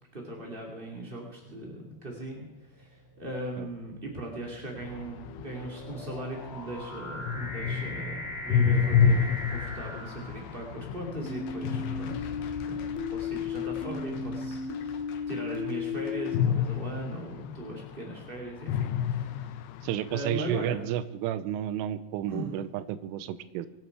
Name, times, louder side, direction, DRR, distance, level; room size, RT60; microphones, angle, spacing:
voice 1, 0.1-12.3 12.7-12.8 13.1-15.0 15.3-19.7 20.1-20.8 22.3-22.5, right 1 dB, 35° right, -1 dB, 0.8 m, -39 dB
sound 1, 1.5-1.9 2.7-10.9, left 1 dB, 40° left, 3.6 m, -41 dB
sound 2, 4.8-15.0 16.3-18.2 18.6-20.2, left 7 dB, 85° left, 2.5 m, -30 dB
sound 3, 11.2-16.4, left 6 dB, 70° left, 2.7 m, -34 dB
voice 2, 19.8-23.7, right 11 dB, 90° right, 13 dB, 3.3 m, -32 dB
24.0 x 10.5 x 4.7 m, 1.0 s
omnidirectional pair, 5.6 m